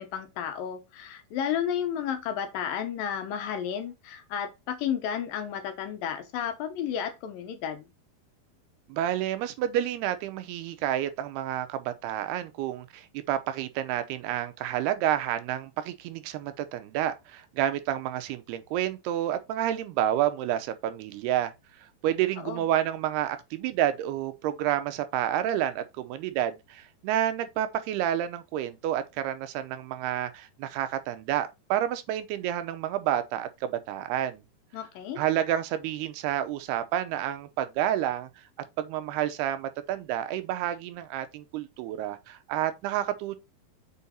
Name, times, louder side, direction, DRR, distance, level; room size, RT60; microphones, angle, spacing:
voice 1, 0.0-7.8 22.4-22.6 34.7-35.2, left 9 dB, 70° left, 2.4 m, -32 dB
voice 2, 8.9-21.5 22.0-34.4 35.2-38.3 38.8-43.4, right 11 dB, 85° right, 2.9 m, -29 dB
6.9 x 4.7 x 4.3 m
omnidirectional pair, 4.5 m